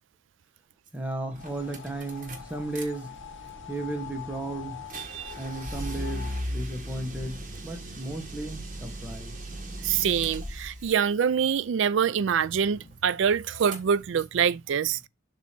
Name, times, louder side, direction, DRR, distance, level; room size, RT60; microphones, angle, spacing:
voice 1, 0.9-3.2 3.7-4.8 5.4-9.3, right 2 dB, 5° right, 1.2 m, -35 dB
sound 1, 0.9-1.0 1.3-2.9 3.2-10.9 12.4-13.1 13.4-14.4, equal, 40° right, 1.4 m, -38 dB
sound 2, 1.4-6.4, left 7 dB, 65° left, 1.0 m, -44 dB
voice 2, 5.0-5.3 9.8-15.0, right 7 dB, 65° right, 0.4 m, -25 dB
7.2 x 2.9 x 5.9 m
head